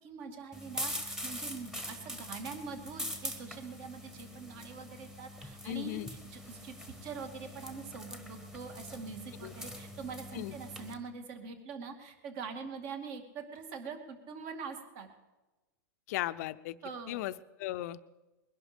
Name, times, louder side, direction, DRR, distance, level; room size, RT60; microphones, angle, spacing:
voice 1, 0.0-6.7 7.0-15.1 16.8-17.2, right 5 dB, 50° right, 6 dB, 2.3 m, -44 dB
sound 1, 0.5-10.9, equal, 5° right, 1.3 m, -43 dB
voice 2, 5.6-6.1 9.4-9.5 10.3-10.5 16.1-16.7 17.1-17.3 17.6-18.0, left 16 dB, 55° left, 14 dB, 0.6 m, -36 dB
21.0 x 11.5 x 5.2 m, 1.1 s
supercardioid pair, 145°, 10 cm